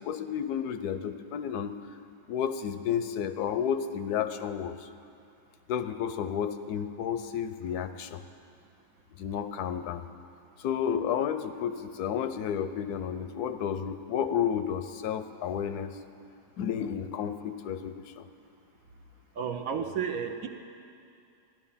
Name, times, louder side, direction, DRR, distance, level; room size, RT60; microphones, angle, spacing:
voice 1, 0.0-1.7 2.3-4.9 5.7-8.2 9.2-10.1 10.6-15.9 16.6-18.3, left 8 dB, 75° left, 10 dB, 1.1 m, -31 dB
voice 2, 19.4-20.5, right 7 dB, 65° right, 5 dB, 1.1 m, -32 dB
14.0 x 11.0 x 5.6 m, 2.5 s
omnidirectional pair, 1.8 m